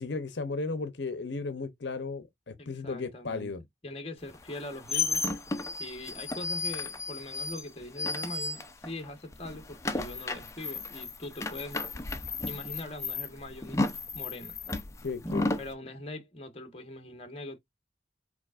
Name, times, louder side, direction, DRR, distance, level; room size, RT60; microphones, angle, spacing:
voice 1, 0.0-3.6 15.0-15.6, left 3 dB, 70° left, 0.7 m, -35 dB
voice 2, 2.6-3.5 3.8-5.3 5.8-11.8 12.4-13.8 14.1-14.5 15.6-17.6, left 1 dB, 30° left, 1.2 m, -42 dB
sound 1, 4.4-9.0 9.3-15.7, left 3 dB, 15° left, 0.6 m, -33 dB
5.0 x 4.2 x 2.4 m
head